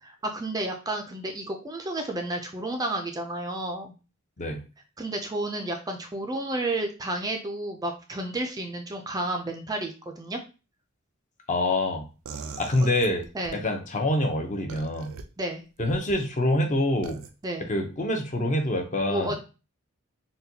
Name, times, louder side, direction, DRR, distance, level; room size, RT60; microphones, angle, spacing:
voice 1, 0.0-3.9 5.0-10.4 13.3-13.6 15.4-15.6 17.4-17.7 19.1-19.4, right 1 dB, 20° right, 4 dB, 0.4 m, -31 dB
voice 2, 11.5-12.1 12.6-13.2 13.6-15.1 15.8-17.2 17.7-19.4, left 1 dB, 35° left, 3 dB, 0.6 m, -26 dB
sound 1, 12.2-13.6 14.7-15.2 15.8-16.2 17.0-17.3, right 5 dB, 75° right, 0.4 m, -41 dB
4.0 x 2.2 x 2.7 m, 0.32 s
head